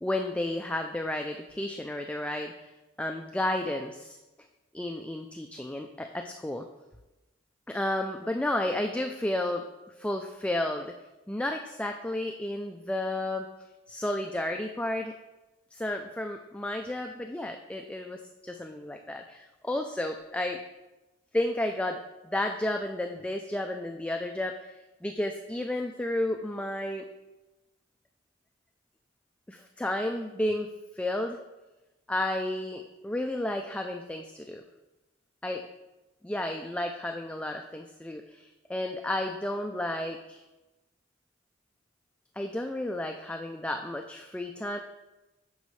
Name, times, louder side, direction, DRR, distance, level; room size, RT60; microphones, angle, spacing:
voice 1, 0.0-4.2 4.7-6.7 7.7-10.9 11.3-13.5 13.9-15.1 15.7-20.6 21.3-27.1 29.5-31.4 32.1-34.6 35.4-35.7 36.2-40.4 42.4-44.8, left 1 dB, 5° left, 4 dB, 0.3 m, -32 dB
9.3 x 6.5 x 3.1 m, 1.1 s
head